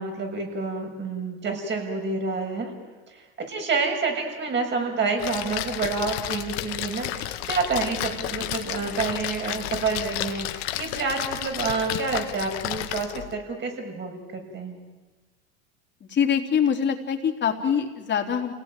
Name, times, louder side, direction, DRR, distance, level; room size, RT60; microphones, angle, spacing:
voice 1, 0.0-2.7 3.1-14.8, right 4 dB, 35° right, 3 dB, 6.9 m, -28 dB
Splash splatter, 5.2-13.3, left 14 dB, 80° left, 1.7 m, -32 dB
voice 2, 16.0-18.5, left 7 dB, 35° left, 3 dB, 3.7 m, -24 dB
29.0 x 18.0 x 9.3 m, 1.2 s
supercardioid pair, 105°, 31 cm